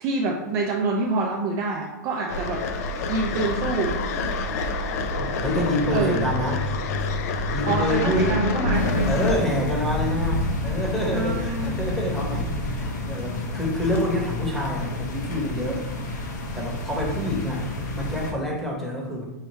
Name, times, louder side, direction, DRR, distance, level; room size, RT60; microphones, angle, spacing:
voice 1, 0.0-2.6 3.1-4.0 5.9-6.3 7.6-9.1 11.1-11.8, right 3 dB, 30° right, -1 dB, 0.4 m, -26 dB
sound 1, 2.3-9.3, left 3 dB, 60° left, 0.4 m, -26 dB
voice 2, 5.2-6.6 7.5-8.3 8.7-15.9 16.3-17.6 17.9-19.3, left 1 dB, 5° left, -3 dB, 0.9 m, -27 dB
sound 2, 7.0-8.4 8.7-8.9 9.3-10.6 10.9-11.3 11.5-11.8 12.1-12.3 12.7-13.6 13.9-14.0, left 1 dB, 40° left, 1.1 m, -45 dB
sound 3, 8.7-18.3, left 2 dB, 80° left, 0.9 m, -29 dB
5.5 x 2.2 x 3.0 m, 1.0 s
hypercardioid pair, 145°, 10 cm